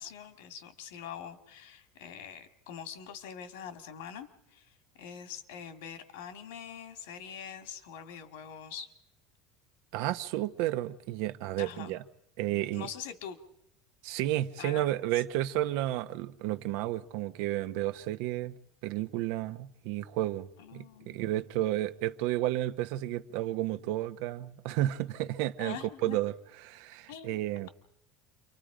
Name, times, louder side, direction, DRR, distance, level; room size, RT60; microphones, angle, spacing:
voice 1, 0.0-8.9 11.6-12.0 12.5-13.4 14.6-15.2 20.6-21.2 25.6-26.2 27.1-27.7, left 8 dB, 85° left, 2.3 m, -44 dB
voice 2, 9.9-12.0 12.4-12.9 14.0-18.5 18.8-25.8 26.0-26.3 26.7-27.7, right 14 dB, 60° right, 1.0 m, -32 dB
28.5 x 25.0 x 5.1 m
cardioid pair, 175°, 0 cm